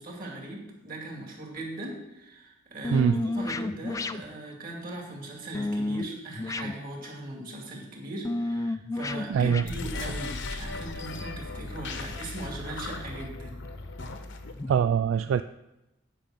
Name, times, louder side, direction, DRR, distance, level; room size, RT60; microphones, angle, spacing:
voice 1, 0.0-13.6, right 1 dB, 50° right, 0 dB, 2.4 m, -39 dB
sound 1, 1.6-1.7 2.8-4.4 5.5-6.1 6.3-7.1 8.2-9.7 10.9-11.0 13.6-13.7 14.6-14.7, left 2 dB, 15° left, 0.3 m, -31 dB
voice 2, 2.9-3.2 9.3-9.7 14.7-15.4, right 7 dB, 80° right, 12 dB, 0.3 m, -23 dB
sound 2, 9.6-14.7, left 3 dB, 65° left, 0.9 m, -37 dB
8.9 x 5.4 x 7.5 m, 0.93 s
head